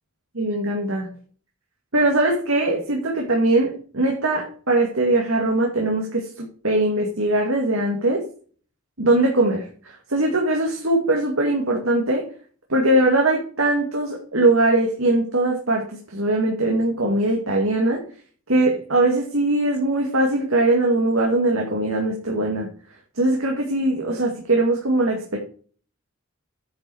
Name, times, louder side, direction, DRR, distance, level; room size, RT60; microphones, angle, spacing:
voice 1, 0.3-1.1 1.9-8.2 9.0-12.3 12.7-18.0 18.5-22.7 23.2-25.4, right 2 dB, 80° right, 0 dB, 2.4 m, -21 dB
10.0 x 5.9 x 4.9 m, 0.41 s
head